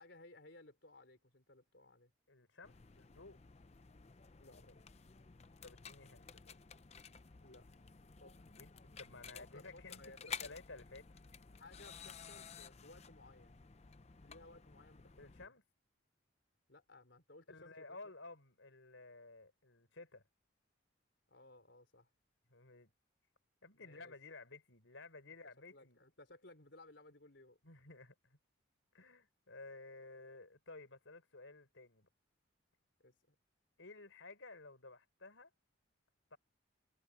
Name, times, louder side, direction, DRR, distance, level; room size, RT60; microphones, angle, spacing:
voice 1, 0.0-2.1 4.4-4.8 7.4-7.7 8.2-8.4 9.3-10.6 11.5-13.6 14.2-15.5 16.7-17.9 21.3-22.1 23.7-24.1 25.7-27.6 33.0-33.3, left 2 dB, 60° left, 4.1 m, -60 dB
voice 2, 2.3-3.4 5.6-6.6 8.5-8.7 9.0-10.0 10.4-11.2 15.2-15.6 17.5-20.2 22.5-22.9 23.6-26.0 27.6-28.4 28.9-32.1 33.8-35.5 36.3-36.4, left 3 dB, 75° left, 4.3 m, -54 dB
sound 1, 2.6-15.5, left 6 dB, 30° left, 0.5 m, -53 dB
head